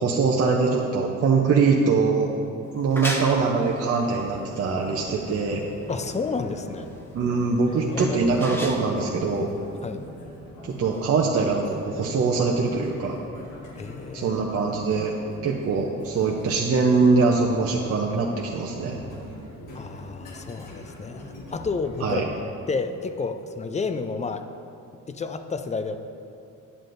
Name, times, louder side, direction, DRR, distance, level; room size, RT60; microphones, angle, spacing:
voice 1, 0.0-2.3 2.7-5.6 7.1-9.5 10.8-13.2 14.1-15.1 15.4-19.0 22.0-22.2, right 4 dB, 50° right, -2 dB, 0.7 m, -23 dB
sound 1, 2.6-10.1, equal, 10° left, 0.9 m, -36 dB
sound 2, 4.1-22.2, left 1 dB, 85° left, 1.4 m, -42 dB
voice 2, 5.9-6.9 7.7-8.2 9.8-10.0 13.8-14.4 19.7-22.2 22.7-24.4 25.1-26.0, left 4 dB, 25° left, 8 dB, 0.4 m, -31 dB
9.8 x 7.5 x 2.6 m, 2.6 s
cardioid pair, 90°, 30 cm